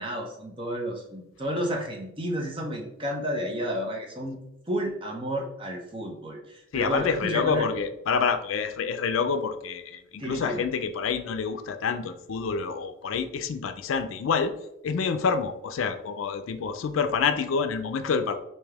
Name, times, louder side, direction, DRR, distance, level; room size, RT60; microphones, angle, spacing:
voice 1, 0.0-4.4 4.7-7.7 10.2-10.6, equal, 25° right, 0 dB, 0.6 m, -31 dB
voice 2, 6.7-14.5 14.8-18.4, left 5 dB, 85° left, 9 dB, 0.4 m, -27 dB
3.4 x 2.7 x 3.3 m, 0.83 s
head